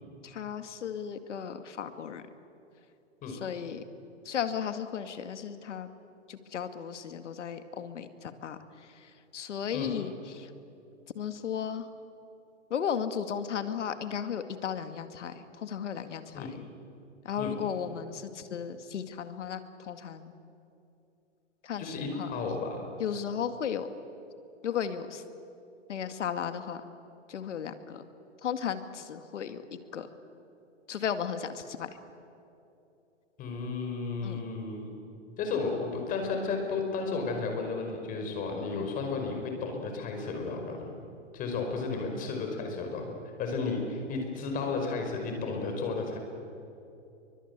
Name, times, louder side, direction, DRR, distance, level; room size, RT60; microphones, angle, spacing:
voice 1, 0.2-2.2 3.3-3.8 4.2-5.9 6.3-10.5 11.1-11.9 12.7-16.5 17.2-20.3 21.6-22.3 23.0-23.9 24.6-25.2 25.9-26.8 27.3-28.0 28.4-30.1 30.9-31.9 34.2-34.4 38.7-38.9, left 8 dB, 70° left, 9 dB, 2.2 m, -35 dB
voice 2, 21.8-22.8 33.4-34.9 35.4-40.9 41.3-43.1 43.4-46.2, left 4 dB, 20° left, 3 dB, 5.1 m, -33 dB
29.5 x 23.5 x 8.3 m, 2.8 s
hypercardioid pair, 150°, 37 cm